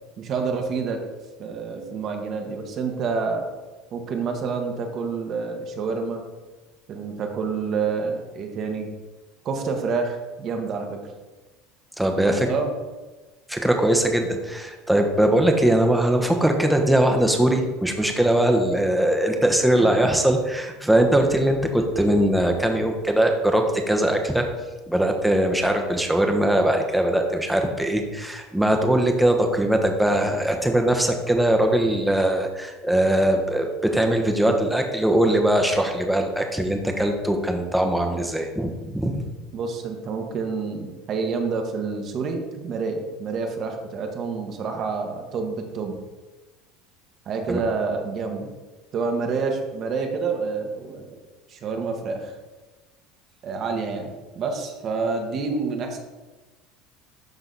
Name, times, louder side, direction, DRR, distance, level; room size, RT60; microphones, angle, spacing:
voice 1, 0.2-1.0 1.4-3.5 3.9-6.2 6.9-8.9 9.4-11.0 12.1-12.7 39.5-46.0 47.2-48.5 48.9-51.1 51.5-52.3 53.4-56.0, right 4 dB, 45° right, 3 dB, 1.4 m, -28 dB
voice 2, 12.0-12.5 13.5-24.5 24.9-39.2 47.5-47.6, right 1 dB, 5° right, 3 dB, 1.1 m, -21 dB
12.0 x 4.0 x 4.0 m, 1.2 s
supercardioid pair, 110°, 0 cm